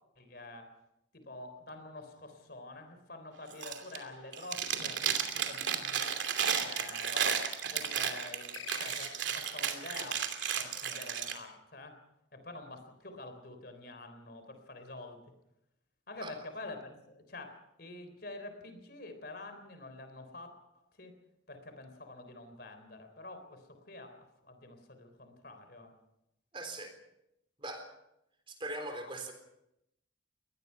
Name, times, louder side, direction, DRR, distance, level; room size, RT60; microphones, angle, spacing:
voice 1, 0.2-0.7 1.1-5.1 5.5-6.2 6.6-7.4 7.7-10.2 10.5-12.0 12.3-15.3 16.1-21.1 21.5-26.0, left 2 dB, 55° left, 7 dB, 3.7 m, -47 dB
Chewing mastication, 3.5-4.0 4.3-11.3, right 8 dB, 70° right, 2.7 m, -33 dB
sound 1, 8.5-9.7, left 9 dB, 90° left, 1.3 m, -47 dB
voice 2, 26.5-26.9 27.6-27.9 28.5-29.3, right 2 dB, 25° right, 6 dB, 3.7 m, -40 dB
23.5 x 19.5 x 5.7 m, 0.83 s
head